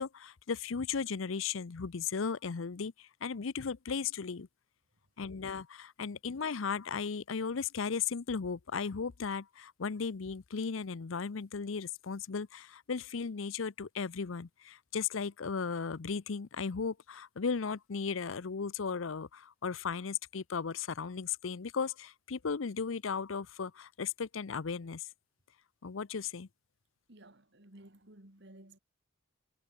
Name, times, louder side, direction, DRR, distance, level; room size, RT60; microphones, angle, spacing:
voice 1, 0.0-4.5 5.2-25.0 25.8-26.5, left 5 dB, 80° left, 0.6 m, -36 dB
voice 2, 27.1-28.8, right 1 dB, 60° right, 3.1 m, -55 dB
head